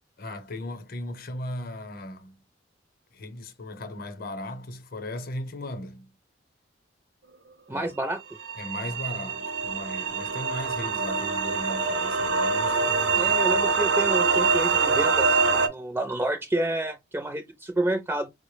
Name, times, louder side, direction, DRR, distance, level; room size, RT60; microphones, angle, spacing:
voice 1, 0.2-2.4 3.1-6.2 7.7-7.9 8.6-13.4, left 1 dB, 50° left, 0.7 m, -37 dB
voice 2, 7.7-8.2 13.1-18.3, right 1 dB, 15° right, 0.4 m, -29 dB
sound 1, 8.4-15.7, right 4 dB, 75° right, 0.6 m, -24 dB
4.5 x 2.0 x 3.1 m
head